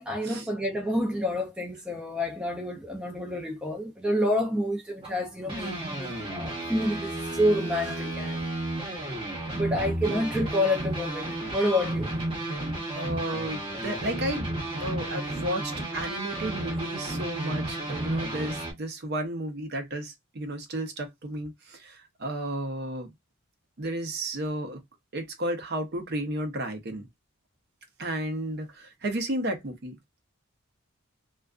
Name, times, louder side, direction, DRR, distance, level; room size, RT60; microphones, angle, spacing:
voice 1, 0.0-8.5 9.5-12.1, left 1 dB, 5° right, 0.4 m, -28 dB
sound 1, 5.0-18.7, right 1 dB, 25° right, 0.9 m, -32 dB
voice 2, 12.9-23.1 23.8-24.8 25.1-27.1 28.0-30.0, right 1 dB, 50° right, 0.6 m, -33 dB
2.3 x 2.3 x 2.3 m
head